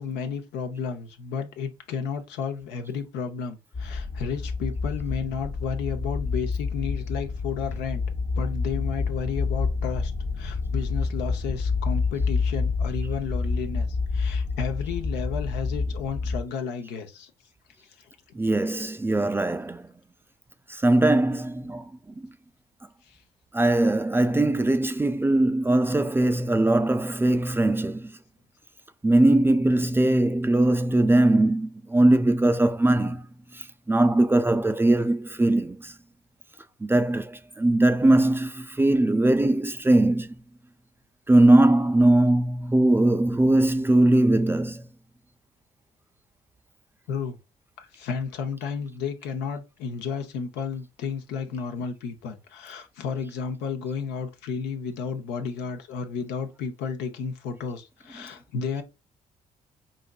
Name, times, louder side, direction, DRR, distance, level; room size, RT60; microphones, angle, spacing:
voice 1, 0.0-8.0 8.4-10.1 10.4-13.9 14.1-17.3 18.0-18.1 23.1-23.2 47.1-47.4 47.8-58.8, left 6 dB, 85° left, 0.7 m, -32 dB
sound 1, 3.7-16.4, left 4 dB, 50° left, 0.7 m, -28 dB
voice 2, 18.3-19.9 20.7-21.8 22.2-22.3 23.5-28.1 29.0-33.3 33.5-35.9 36.8-40.4 41.3-44.8, right 1 dB, 15° right, 0.3 m, -21 dB
5.0 x 2.6 x 2.3 m
supercardioid pair, 60°, 17 cm